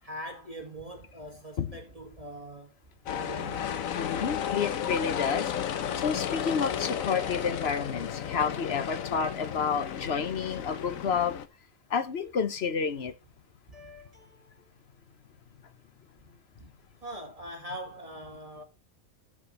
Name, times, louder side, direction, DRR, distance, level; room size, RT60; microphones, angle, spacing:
voice 1, 0.0-2.8 3.1-3.7 13.7-14.7 16.5-16.7 17.0-18.6, right 1 dB, 25° right, 2.3 m, -43 dB
sound 1, 3.1-11.5, left 9 dB, 75° left, 1.3 m, -33 dB
voice 2, 3.9-5.5 6.0-11.4 11.9-13.1, left 6 dB, 50° left, 1.0 m, -30 dB
12.0 x 6.1 x 4.0 m
omnidirectional pair, 1.4 m